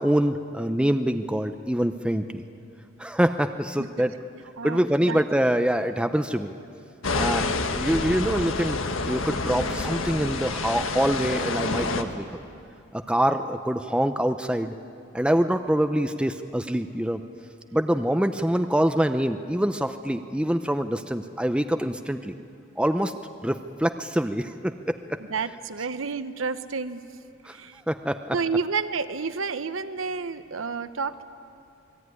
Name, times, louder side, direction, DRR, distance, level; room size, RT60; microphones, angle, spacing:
voice 1, 0.0-2.4 3.0-4.1 4.6-6.5 7.1-12.3 12.9-14.8 15.1-17.2 17.7-22.3 22.8-23.1 23.4-25.2 27.4-27.6 27.9-28.4, right 1 dB, 5° right, 8 dB, 0.6 m, -25 dB
voice 2, 4.6-5.2 25.3-27.0 27.5-27.8 28.3-31.2, right 4 dB, 85° right, 11 dB, 1.1 m, -30 dB
sound 1, 7.0-12.0, left 3 dB, 80° left, 1.6 m, -28 dB
28.0 x 21.0 x 9.7 m, 2.5 s
head